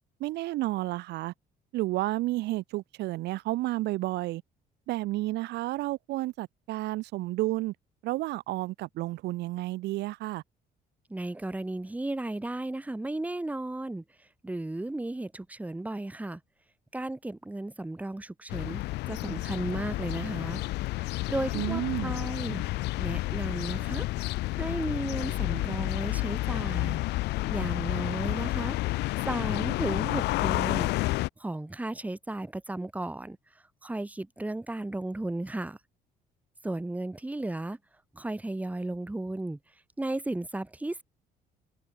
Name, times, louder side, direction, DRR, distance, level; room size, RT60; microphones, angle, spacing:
voice 1, 0.2-1.3 1.7-4.4 4.9-7.7 8.0-10.4 21.5-22.1, right 18 dB, 80° right, 1.7 m, -31 dB
voice 2, 11.1-14.0 14.4-16.4 16.9-20.6 21.0-22.6 23.0-24.1 24.5-27.0 27.5-28.8 29.3-30.9 31.4-33.4 33.8-35.8 36.6-37.8 38.1-39.6 40.0-41.0, right 2 dB, 10° right, 1.8 m, -34 dB
sound 1, 18.5-31.3, left 19 dB, 85° left, 1.8 m, -30 dB
cardioid pair, 110°, 17 cm